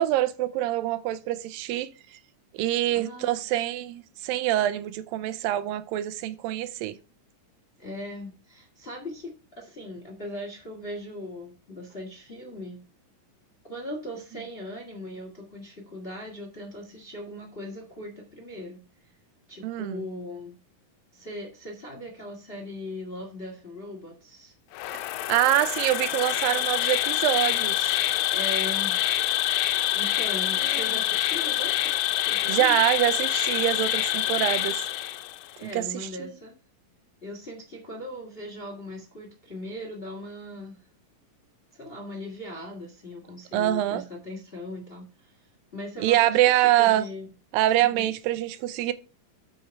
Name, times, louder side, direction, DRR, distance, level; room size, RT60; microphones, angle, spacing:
voice 1, 0.0-2.2 2.5-7.0 19.6-20.0 25.3-27.9 30.7-30.8 32.5-34.8 35.6-36.3 43.5-44.0 46.0-47.1 47.5-48.9, right 14 dB, 85° right, 2.3 m, -25 dB
voice 2, 2.9-3.4 7.8-12.8 13.7-19.1 19.5-20.6 21.1-24.5 28.3-29.0 29.9-32.7 35.6-36.6 37.2-40.8 41.7-45.4 45.7-47.3 47.8-48.1, left 1 dB, 25° left, 1.4 m, -39 dB
Insect, 24.7-35.5, left 14 dB, 85° left, 2.5 m, -26 dB
8.6 x 5.6 x 4.7 m
omnidirectional pair, 4.0 m